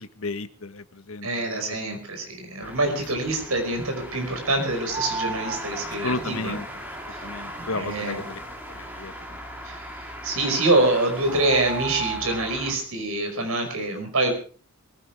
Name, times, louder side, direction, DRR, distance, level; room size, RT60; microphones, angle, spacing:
voice 1, 0.0-1.8 5.8-6.7 7.0-8.4 8.7-9.4, left 3 dB, 70° left, 11 dB, 1.2 m, -33 dB
voice 2, 1.2-6.6 7.1-7.3 7.7-8.3 9.6-14.3, right 2 dB, 75° right, 5 dB, 5.5 m, -25 dB
sound 1, 2.6-12.7, equal, 10° right, 3.4 m, -38 dB
sound 2, 4.9-5.8 10.4-10.6 11.3-12.5, right 5 dB, 25° right, 1.6 m, -33 dB
22.5 x 15.5 x 3.5 m, 0.38 s
head